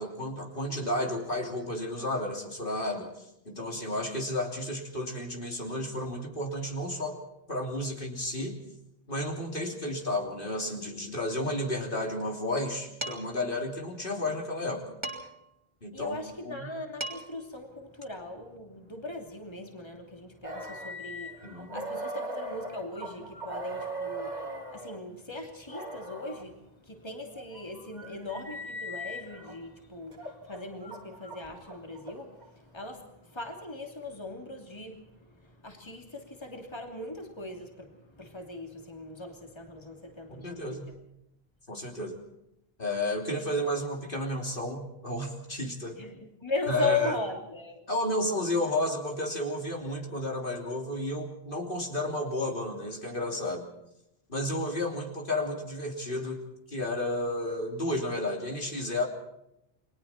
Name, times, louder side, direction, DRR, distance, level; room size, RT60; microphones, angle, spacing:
voice 1, 0.0-3.1 3.4-7.2 7.5-8.5 9.1-14.9 15.8-16.2 16.4-16.7 21.4-21.8 40.3-40.9 41.7-42.2 42.8-46.0 46.7-47.2 47.9-53.7 54.3-56.4 56.7-59.1, left 1 dB, 60° left, 1 dB, 3.4 m, -32 dB
Dishes pots and pans, 13.0-13.4 15.0-15.5 16.7-16.8 17.0-17.5, right 1 dB, 25° right, 3.4 m, -37 dB
voice 2, 15.9-40.8 45.9-47.8, left 3 dB, 25° left, 3 dB, 3.0 m, -39 dB
sound 1, 20.4-25.0 25.7-26.4 27.2-29.6 30.1-32.5, right 1 dB, 45° right, 3.6 m, -40 dB
30.0 x 22.0 x 4.4 m, 0.84 s
omnidirectional pair, 1.0 m